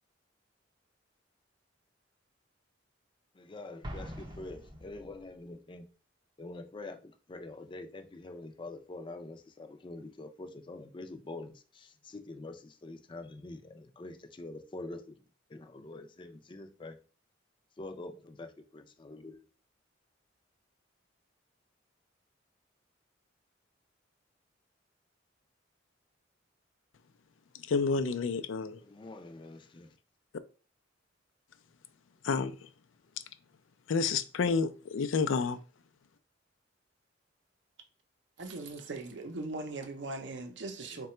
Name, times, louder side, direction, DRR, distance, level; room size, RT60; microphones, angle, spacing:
voice 1, 3.3-5.9 6.4-15.2 15.5-17.0 17.8-19.5 28.8-29.9 40.9-41.0, left 2 dB, 25° left, 0.4 m, -45 dB
Explosion, 3.8-5.4, equal, 25° right, 0.5 m, -44 dB
voice 2, 27.7-28.8 32.2-32.5 33.9-35.6, left 5 dB, 90° left, 0.4 m, -29 dB
voice 3, 38.4-41.1, right 2 dB, 65° right, 0.6 m, -39 dB
3.8 x 2.2 x 4.2 m
head